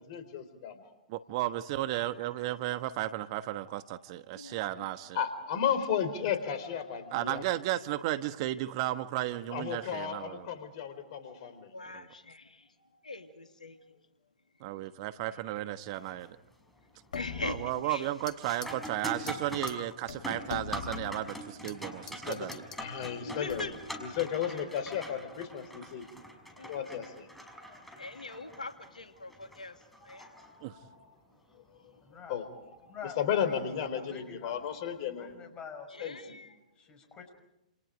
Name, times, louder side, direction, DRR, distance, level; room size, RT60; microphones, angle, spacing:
voice 1, 0.0-0.9 4.5-4.6 5.1-7.4 9.5-11.7 22.2-22.5 22.8-26.1 26.7-27.8 30.1-30.9 32.3-35.3 36.0-36.2, left 8 dB, 45° left, 11 dB, 4.3 m, -34 dB
voice 2, 1.1-5.2 7.1-10.6 11.9-12.1 14.6-16.4 17.4-22.6 30.6-30.8, right 15 dB, 45° right, 11 dB, 1.3 m, -34 dB
voice 3, 1.9-2.4 4.3-4.9 11.7-12.7 13.0-13.8 15.3-15.4 17.1-18.1 23.2-24.0 24.5-24.6 26.6-26.9 28.0-30.3 35.9-36.6, left 3 dB, 80° left, 6 dB, 2.3 m, -43 dB
Metal barrel rolling, 15.9-16.3 16.7-17.1 17.5-31.0 33.5-33.6 34.4-34.6, equal, ahead, 5.7 m, -44 dB
sound 1, 17.1-18.4 18.6-18.9 19.3-19.4 19.7-19.8 20.1-21.8 22.1-22.8 23.5-23.9, left 6 dB, 65° left, 1.8 m, -42 dB
voice 4, 32.0-32.4 32.9-33.7 34.0-34.5 35.2-36.1 36.8-37.3, left 6 dB, 20° left, 6 dB, 6.1 m, -47 dB
29.5 x 28.5 x 5.2 m, 0.87 s
figure-of-eight pair, 110°, 4 cm